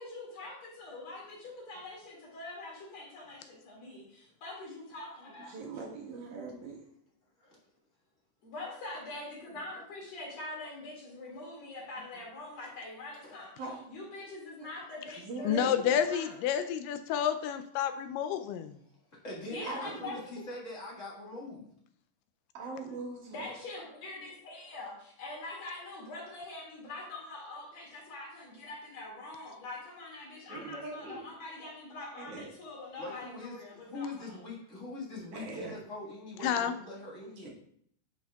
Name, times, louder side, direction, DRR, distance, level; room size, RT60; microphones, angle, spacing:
voice 1, 0.0-5.5 8.4-13.5 13.9-15.8 16.1-16.4 19.4-20.4 23.3-34.4, left 2 dB, 55° left, -3 dB, 3.0 m, -44 dB
voice 2, 5.4-6.8 13.6-13.8 15.2-16.0 19.6-20.1 22.5-23.5 30.5-31.2 32.2-32.5 35.3-35.7 37.4-37.5, right 3 dB, 70° right, -2 dB, 2.7 m, -41 dB
voice 3, 9.5-9.8 13.2-13.4 19.1-21.7 33.0-37.5, left 2 dB, 35° left, -5 dB, 1.3 m, -43 dB
voice 4, 15.4-18.8 36.4-36.7, left 9 dB, 85° left, 8 dB, 2.2 m, -30 dB
10.0 x 5.5 x 2.3 m, 0.65 s
omnidirectional pair, 3.8 m